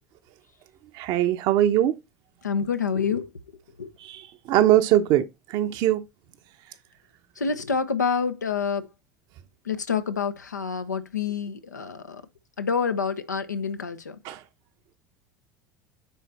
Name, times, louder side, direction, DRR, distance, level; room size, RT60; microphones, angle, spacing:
voice 1, 0.9-2.0 4.0-5.2 5.5-6.0 14.2-14.4, right 12 dB, 50° right, 0.9 m, -21 dB
voice 2, 2.4-3.3 3.8-3.9 7.4-8.9 9.7-12.2 12.6-14.2, left 6 dB, 80° left, 0.8 m, -27 dB
9.4 x 4.2 x 4.2 m
figure-of-eight pair, 75°, 9 cm